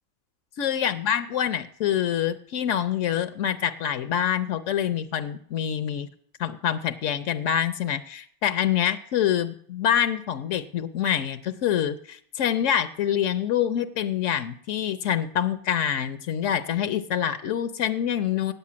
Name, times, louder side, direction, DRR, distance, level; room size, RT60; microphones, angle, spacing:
voice 1, 0.6-6.1 6.4-18.5, left 9 dB, 80° left, 11 dB, 1.0 m, -26 dB
8.8 x 6.7 x 8.5 m, 0.62 s
omnidirectional pair, 1.3 m